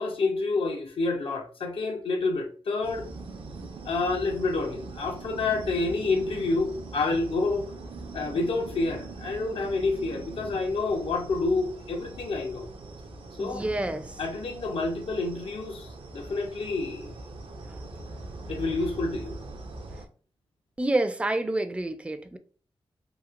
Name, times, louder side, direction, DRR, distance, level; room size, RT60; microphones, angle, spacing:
voice 1, 0.0-3.1 3.9-7.7 8.1-12.7 13.4-13.6 14.2-17.2 18.5-19.4, left 3 dB, 75° left, 0.7 m, -28 dB
sound 1, 2.8-20.1, right 3 dB, 70° right, 0.5 m, -42 dB
voice 2, 13.4-14.2 17.7-17.8 20.8-22.4, right 2 dB, 15° right, 0.4 m, -28 dB
2.9 x 2.8 x 2.4 m
wide cardioid pair, 80°, 9 cm